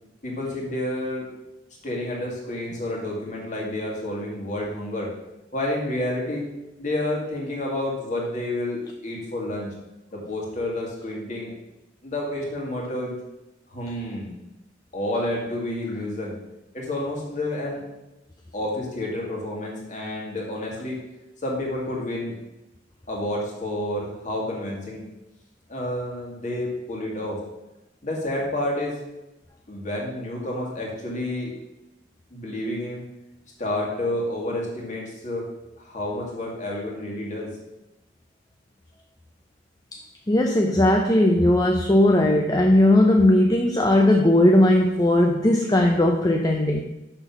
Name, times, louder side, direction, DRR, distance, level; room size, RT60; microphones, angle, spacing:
voice 1, 0.2-1.3 1.8-5.1 5.5-6.5 6.8-9.7 10.1-11.5 12.0-13.2 13.7-14.4 14.9-16.4 16.7-17.9 18.5-21.0 21.4-22.4 23.1-25.1 25.7-27.4 28.0-29.0 29.7-31.6 32.3-33.1 33.6-35.5 35.8-37.6, left 1 dB, 40° left, -2 dB, 2.2 m, -29 dB
voice 2, 40.3-46.8, left 1 dB, 20° left, 2 dB, 0.6 m, -18 dB
6.7 x 6.0 x 5.9 m, 0.97 s
head